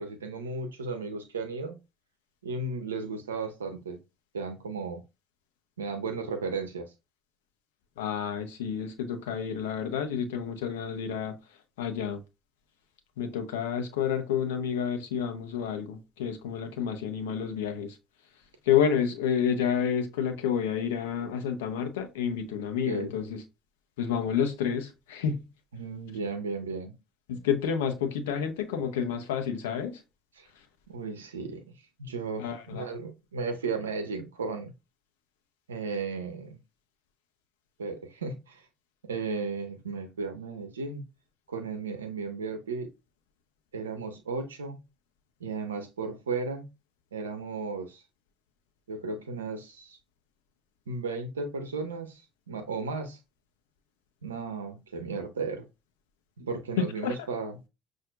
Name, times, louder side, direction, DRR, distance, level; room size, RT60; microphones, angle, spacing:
voice 1, 0.0-1.7 2.4-4.0 4.3-5.0 5.8-6.9 22.8-23.1 25.7-26.9 30.4-30.5 30.9-31.7 32.0-34.7 35.7-36.6 37.8-38.7 39.0-41.0 41.5-42.9 43.7-44.8 45.4-46.7 47.1-48.0 48.9-50.0 50.9-52.2 52.5-53.2 54.2-55.7 56.4-57.6, right 4 dB, 90° right, 0.6 m, -35 dB
voice 2, 8.0-11.4 11.8-12.2 13.2-18.0 18.7-23.4 24.0-25.4 27.3-30.0 32.4-32.9 56.8-57.1, left 7 dB, 80° left, 0.7 m, -29 dB
5.8 x 2.5 x 2.4 m
hypercardioid pair, 60°, 0 cm